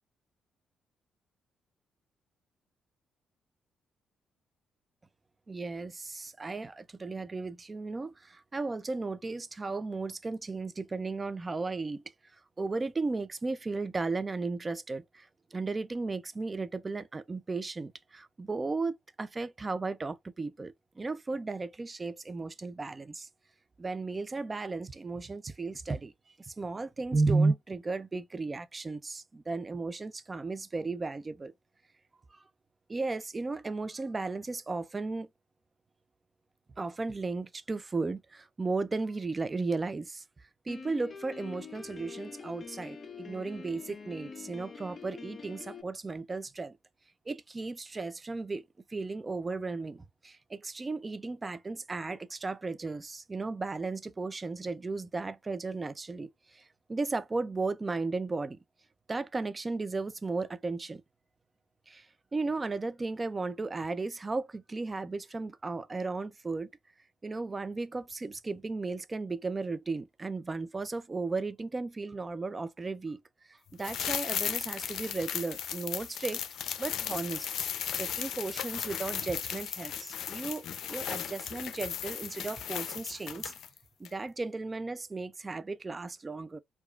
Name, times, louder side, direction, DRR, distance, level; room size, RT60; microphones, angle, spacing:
voice 1, 5.5-12.0 12.6-23.3 23.8-26.1 26.4-31.5 32.3-32.4 32.9-35.3 36.8-40.2 40.7-46.8 47.3-48.6 48.9-58.6 59.1-61.0 61.9-62.1 62.3-66.7 67.2-73.2 73.5-76.4 76.8-77.5 77.9-83.5 84.0-86.6, right 3 dB, 25° right, 0.4 m, -35 dB
Piano, 40.7-45.8, left 5 dB, 35° left, 0.7 m, -45 dB
sound 1, 73.8-83.8 84.0-84.1, left 9 dB, 70° left, 0.5 m, -36 dB
4.8 x 2.3 x 2.4 m
cardioid pair, 90°, 0 cm